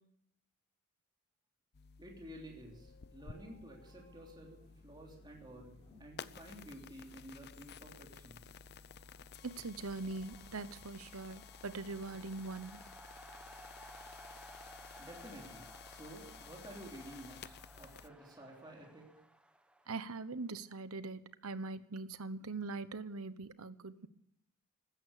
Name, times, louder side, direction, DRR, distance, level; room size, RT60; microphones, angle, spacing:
sound 1, 1.7-18.1, left 6 dB, 50° left, 0.6 m, -54 dB
voice 1, 2.0-8.6 14.5-19.1, right 1 dB, 20° right, -1 dB, 3.4 m, -52 dB
sound 2, 2.7-10.5, left 1 dB, 25° left, 5.7 m, -67 dB
sound 3, 8.6-20.6, right 1 dB, 5° right, 1.1 m, -57 dB
voice 2, 9.4-12.8 19.9-24.1, right 3 dB, 70° right, 14 dB, 1.0 m, -42 dB
15.5 x 13.5 x 6.7 m, 0.69 s
head